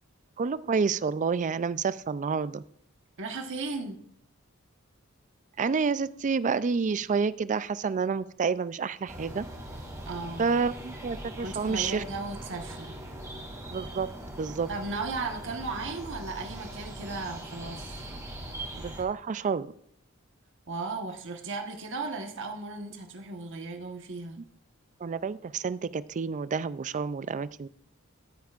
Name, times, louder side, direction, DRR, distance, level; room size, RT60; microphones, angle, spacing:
voice 1, 0.4-2.6 5.6-9.5 10.4-12.0 13.7-14.1 14.4-14.7 18.7-19.7 25.0-27.7, right 5 dB, 35° right, 16 dB, 0.4 m, -29 dB
voice 2, 3.2-4.0 10.1-10.4 11.4-12.9 14.7-17.9 20.7-24.4, right 3 dB, 60° right, 4 dB, 1.3 m, -36 dB
sound 1, 9.1-19.0, right 1 dB, 15° right, 2.4 m, -41 dB
14.5 x 8.1 x 2.5 m, 0.69 s
head